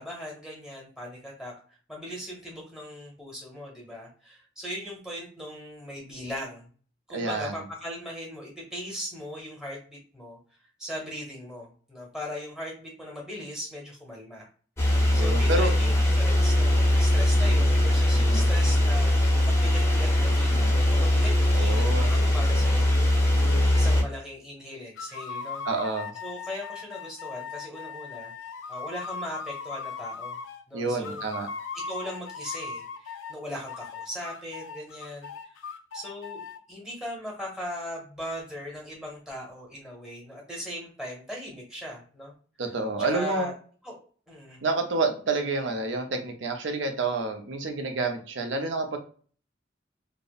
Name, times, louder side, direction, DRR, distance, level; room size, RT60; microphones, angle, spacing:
voice 1, 0.0-1.5 1.9-6.7 7.1-10.4 10.8-14.5 14.9-23.2 23.7-25.6 26.2-28.3 28.7-30.4 30.7-31.3 31.8-35.5 35.9-42.3 43.0-43.5 43.8-44.0 44.3-44.6, equal, 5° right, -2 dB, 0.9 m, -39 dB
voice 2, 7.1-7.6 15.1-15.7 18.1-18.5 21.5-22.1 25.7-26.1 30.7-31.5 42.6-43.5 44.6-49.0, right 3 dB, 75° right, 5 dB, 0.5 m, -29 dB
sound 1, 14.8-24.0, left 1 dB, 15° left, 0.5 m, -21 dB
sound 2, 25.0-30.6 31.0-33.4 33.7-36.6, left 5 dB, 90° left, 0.3 m, -38 dB
2.7 x 2.0 x 2.3 m, 0.43 s
head